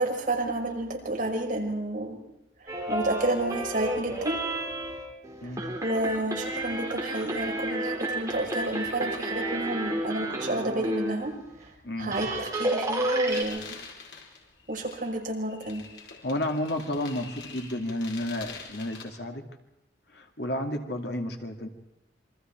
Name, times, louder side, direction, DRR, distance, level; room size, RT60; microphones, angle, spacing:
voice 1, 0.0-2.2 2.6-4.4 5.4-5.5 5.8-11.7 12.0-13.8 14.7-15.8, right 2 dB, 50° right, 0 dB, 5.4 m, -30 dB
sound 1, 2.7-11.2 11.7-11.8 12.0-13.4, right 1 dB, 20° right, 4.9 m, -31 dB
voice 2, 11.8-12.2 16.2-19.4 20.1-21.7, left 1 dB, 65° left, 4 dB, 2.6 m, -31 dB
sound 2, 13.3-19.0, left 5 dB, 85° left, 4.8 m, -45 dB
27.5 x 24.5 x 4.6 m, 0.87 s
head